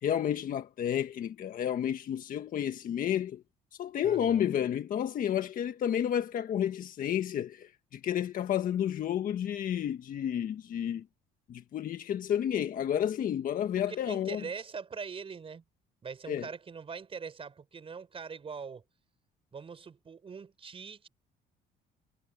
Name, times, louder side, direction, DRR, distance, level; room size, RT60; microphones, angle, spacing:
voice 1, 0.0-3.4 3.8-11.0 11.5-14.4 16.3-16.5, left 10 dB, 55° left, 1.5 m, -31 dB
voice 2, 4.0-4.6 13.7-15.6 16.0-18.8 19.5-21.1, right 5 dB, 35° right, 4.7 m, -42 dB
cardioid pair, 110°, 17 cm